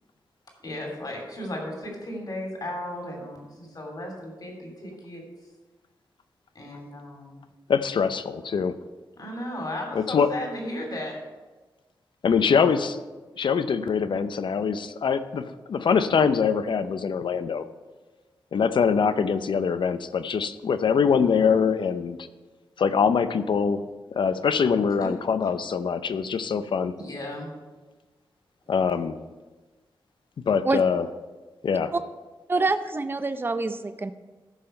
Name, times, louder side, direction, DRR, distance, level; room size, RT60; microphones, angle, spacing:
voice 1, 0.6-5.2 6.5-7.4 9.2-11.2 12.5-12.7 24.2-24.5 25.4-25.5 27.0-27.5, left 1 dB, 50° left, 1 dB, 2.8 m, -35 dB
voice 2, 7.7-8.7 9.9-10.3 12.2-12.9 13.4-17.7 18.5-22.2 22.8-23.8 24.1-26.9 28.7-29.2 30.5-31.1 31.6-31.9, left 6 dB, 70° left, 12 dB, 0.6 m, -23 dB
voice 3, 32.5-34.1, right 3 dB, 25° right, 10 dB, 0.6 m, -26 dB
14.0 x 5.7 x 4.4 m, 1.2 s
wide cardioid pair, 90°, 9 cm